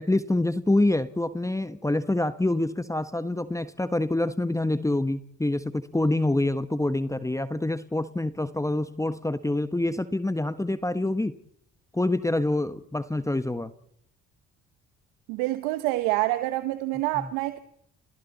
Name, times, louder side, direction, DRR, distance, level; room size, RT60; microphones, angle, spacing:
voice 1, 0.0-11.3 11.9-13.7 17.1-17.3, left 2 dB, 10° left, 1.4 m, -26 dB
voice 2, 15.3-17.6, right 17 dB, 85° right, 1.2 m, -27 dB
29.5 x 27.5 x 4.2 m
hypercardioid pair, 55°, 31 cm